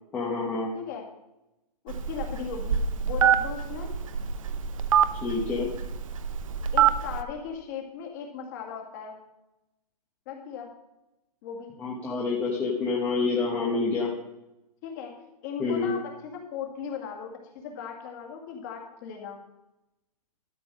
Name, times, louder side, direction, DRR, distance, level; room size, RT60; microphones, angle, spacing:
voice 1, 0.1-0.7 5.2-5.7 11.8-14.1 15.6-15.9, left 4 dB, 10° left, -4 dB, 1.0 m, -27 dB
voice 2, 1.8-3.9 6.7-9.2 10.3-10.7 11.4-11.8 14.8-19.4, left 7 dB, 30° left, 1 dB, 2.2 m, -38 dB
Telephone, 1.9-7.2, right 8 dB, 55° right, 0.8 m, -25 dB
13.0 x 7.0 x 6.3 m, 0.93 s
hypercardioid pair, 170°, 21 cm